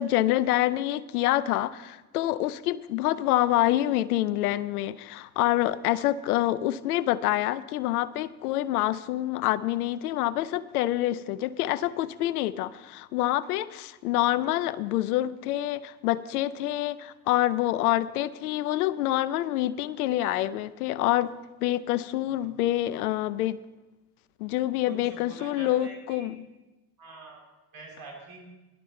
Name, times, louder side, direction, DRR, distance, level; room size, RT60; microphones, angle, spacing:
voice 1, 0.0-21.3 21.6-23.6 24.4-26.4, left 14 dB, 85° left, 18 dB, 0.6 m, -27 dB
voice 2, 22.3-22.7 24.8-26.3 27.0-28.4, right 3 dB, 50° right, 0 dB, 3.9 m, -46 dB
17.5 x 11.5 x 4.2 m, 1.1 s
hypercardioid pair, 50°, 44 cm